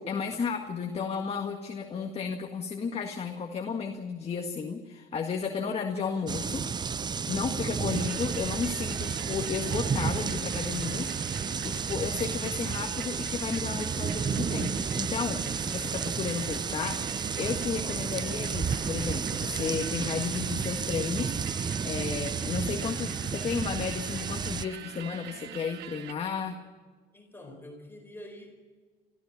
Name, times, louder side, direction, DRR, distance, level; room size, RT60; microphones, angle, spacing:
voice 1, 0.0-6.6 7.3-26.6, left 5 dB, 35° left, 3 dB, 1.8 m, -33 dB
sound 1, 6.3-24.7, right 6 dB, 25° right, 0.5 m, -32 dB
sound 2, 7.9-26.1, right 11 dB, 85° right, 1.2 m, -44 dB
voice 2, 27.1-28.6, left 1 dB, 15° left, 2 dB, 4.3 m, -46 dB
25.0 x 14.5 x 7.2 m, 1.5 s
cardioid pair, 110°, 17 cm